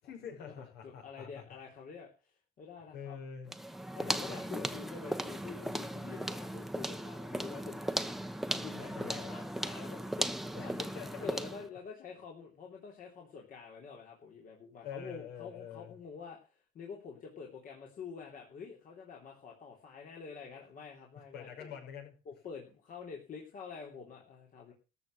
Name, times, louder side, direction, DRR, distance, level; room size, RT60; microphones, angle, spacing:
voice 1, 0.0-1.4 2.9-3.5 4.0-4.8 9.0-9.3 10.5-11.3 14.8-15.9 21.3-22.1, left 7 dB, 75° left, 2 dB, 6.2 m, -46 dB
voice 2, 0.8-3.2 3.9-10.3 10.6-10.9 11.2-21.7 22.2-24.7, left 5 dB, 55° left, 0 dB, 3.3 m, -47 dB
sound 1, 3.5-11.7, right 1 dB, ahead, 1.0 m, -37 dB
13.5 x 6.5 x 7.7 m, 0.34 s
cardioid pair, 110°, 17 cm